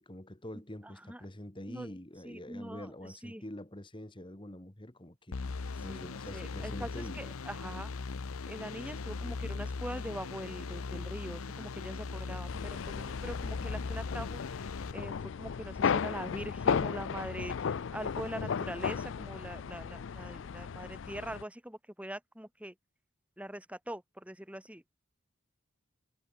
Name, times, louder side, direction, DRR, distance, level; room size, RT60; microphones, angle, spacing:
voice 1, 0.0-5.4 5.8-7.2, left 1 dB, 25° left, 1.8 m, -45 dB
voice 2, 0.8-1.2 1.7-2.0 2.2-3.4 5.8-7.9 8.5-22.7 23.4-24.8, right 1 dB, 5° right, 2.8 m, -43 dB
sound 1, 5.3-14.9, left 4 dB, 80° left, 0.7 m, -39 dB
sound 2, 12.5-21.4, left 6 dB, 60° left, 0.4 m, -35 dB
head